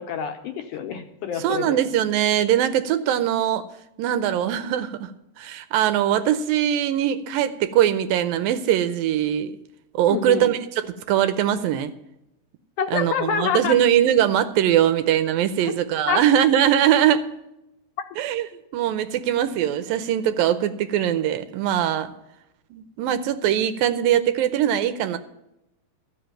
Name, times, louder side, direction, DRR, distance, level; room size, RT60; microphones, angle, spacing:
voice 1, 0.0-1.8 10.1-10.5 12.8-13.8 15.6-15.7 16.1-16.2, left 7 dB, 70° left, 4 dB, 2.1 m, -27 dB
voice 2, 1.4-3.7 4.0-5.1 5.4-9.6 9.9-11.9 12.9-17.3 18.2-18.5 18.7-22.1 22.7-25.2, right 10 dB, 80° right, 10 dB, 2.4 m, -21 dB
14.0 x 5.5 x 8.9 m, 0.86 s
omnidirectional pair, 4.3 m